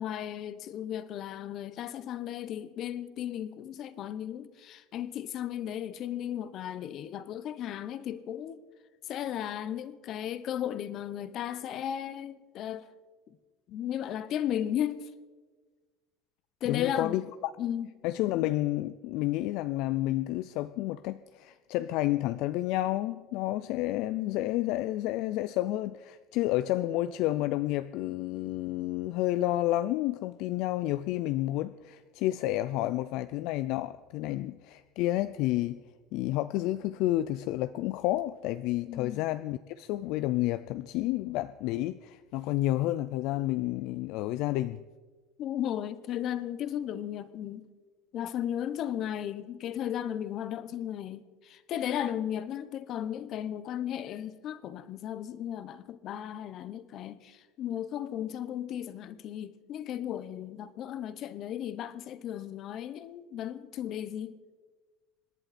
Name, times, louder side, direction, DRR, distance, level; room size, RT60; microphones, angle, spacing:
voice 1, 0.0-8.6 9.0-12.9 13.7-15.1 16.6-17.2 17.6-17.9 38.9-39.2 45.4-47.7 48.1-64.4, left 10 dB, 40° left, 0.8 m, -35 dB
voice 2, 16.6-17.2 18.0-35.8 36.1-44.8, left 15 dB, 55° left, 0.4 m, -30 dB
26.5 x 11.0 x 4.2 m
cardioid pair, 165°, 0 cm